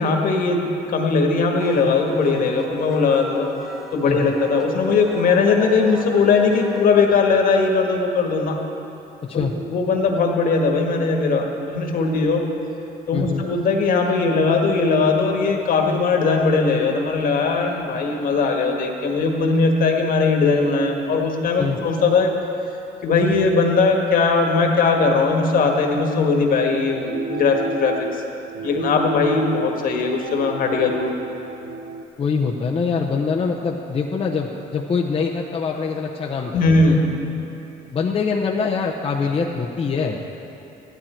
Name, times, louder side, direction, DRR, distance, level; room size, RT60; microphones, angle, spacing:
voice 1, 0.0-3.5 3.9-8.6 9.3-12.4 13.1-22.3 23.0-27.9 28.6-31.1 36.5-37.3, left 4 dB, 55° left, 2 dB, 1.6 m, -19 dB
Wind instrument woodwind instrument, 1.6-6.9, right 1 dB, ahead, 0.8 m, -35 dB
voice 2, 9.2-9.5 13.1-13.4 21.6-21.8 32.2-36.7 37.9-40.3, left 5 dB, 35° left, -2 dB, 0.8 m, -24 dB
sound 1, 26.7-32.0, right 3 dB, 80° right, 0.7 m, -32 dB
14.5 x 11.5 x 4.5 m, 2.9 s
cardioid pair, 110°, 17 cm